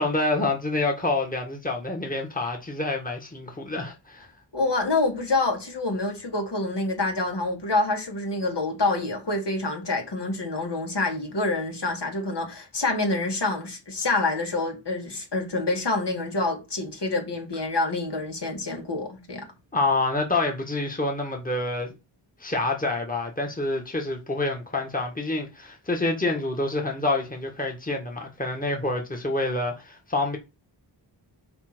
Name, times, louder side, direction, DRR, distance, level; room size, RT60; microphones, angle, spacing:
voice 1, 0.0-4.3 19.7-21.9 22.4-30.4, left 2 dB, 20° left, 1.9 m, -27 dB
voice 2, 4.5-19.5, left 2 dB, 65° left, 2.8 m, -27 dB
5.9 x 4.9 x 6.2 m
wide cardioid pair, 90°, 44 cm